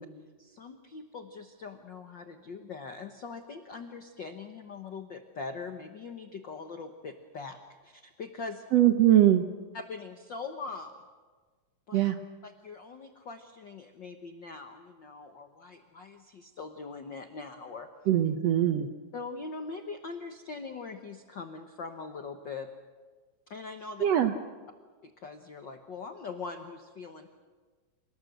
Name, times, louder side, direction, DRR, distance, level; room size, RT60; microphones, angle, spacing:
voice 1, 0.4-8.6 9.7-11.0 11.9-12.0 12.4-17.9 19.1-22.7 23.5-24.0 25.0-27.3, left 4 dB, 80° left, 6 dB, 1.0 m, -42 dB
voice 2, 8.7-9.4 11.9-12.2 18.1-18.9 24.0-24.3, right 12 dB, 70° right, 7 dB, 1.6 m, -22 dB
28.5 x 19.0 x 8.0 m, 1.4 s
omnidirectional pair, 4.0 m